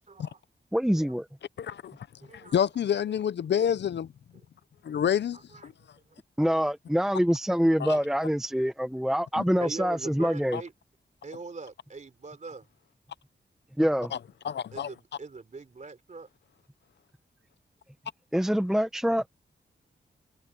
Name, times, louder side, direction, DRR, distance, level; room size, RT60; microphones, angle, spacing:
voice 1, 0.1-0.4 1.7-1.9 2.2-2.6 3.1-3.2 4.3-4.4 5.3-5.7 9.6-10.7 11.2-12.7 14.7-16.3, right 4 dB, 40° right, 3.4 m, -42 dB
voice 2, 0.7-1.2 6.4-10.6 13.8-14.1 18.3-19.2, equal, ahead, 0.8 m, -25 dB
voice 3, 1.6-1.9 2.5-4.1 4.9-5.4 5.6-5.7 7.8-8.0 10.5-10.6 14.4-14.9, left 9 dB, 65° left, 0.5 m, -27 dB
wide cardioid pair, 140°, 19 cm